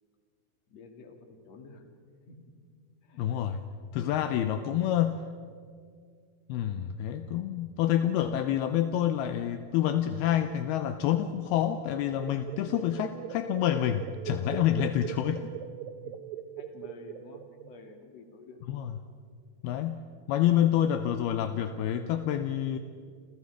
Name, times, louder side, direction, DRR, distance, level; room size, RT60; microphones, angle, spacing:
voice 1, 0.7-1.8 2.3-2.4 3.0-3.7 4.4-4.8 8.1-8.6 16.0-16.2 16.6-18.6, left 4 dB, 45° left, 3 dB, 3.1 m, -51 dB
voice 2, 3.2-3.6 3.9-5.2 6.5-15.5 18.7-18.9 19.6-22.8, left 11 dB, 80° left, 8 dB, 2.6 m, -28 dB
sound 1, 11.4-18.0, right 11 dB, 80° right, 3.0 m, -41 dB
29.0 x 28.0 x 4.9 m, 2.1 s
omnidirectional pair, 4.8 m